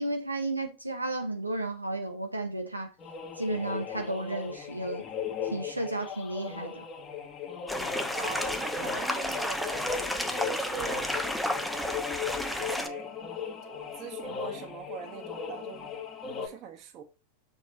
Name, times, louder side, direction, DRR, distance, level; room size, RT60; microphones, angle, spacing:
voice 1, 0.0-2.9 3.4-5.0 5.4-6.9, right 2 dB, 85° right, 0.9 m, -33 dB
sound 1, 3.0-16.5, left 6 dB, 25° left, 1.6 m, -37 dB
sound 2, 7.7-12.9, left 1 dB, ahead, 0.9 m, -32 dB
voice 2, 8.1-11.1 11.7-13.1 13.5-15.9 16.4-17.0, right 7 dB, 40° right, 1.8 m, -42 dB
7.3 x 5.4 x 4.3 m
figure-of-eight pair, 90°, 0 cm